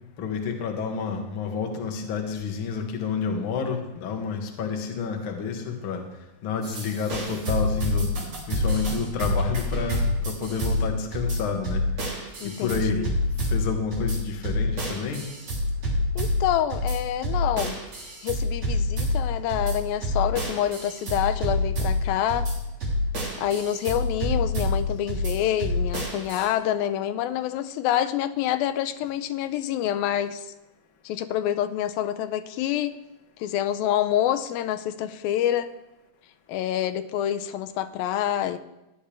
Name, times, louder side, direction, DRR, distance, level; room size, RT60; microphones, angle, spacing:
voice 1, 0.2-6.0 6.4-8.1 8.5-11.8 12.2-13.0 13.5-15.3, left 5 dB, 55° left, 3 dB, 1.5 m, -29 dB
sound 1, 6.6-26.5, left 1 dB, 50° right, 4.2 m, -27 dB
voice 2, 12.4-13.2 16.2-17.8 18.2-22.5 23.4-30.5 31.1-33.0 33.4-35.7 36.5-38.6, left 11 dB, 85° left, 9 dB, 2.4 m, -27 dB
16.0 x 10.0 x 3.4 m, 0.95 s
omnidirectional pair, 4.2 m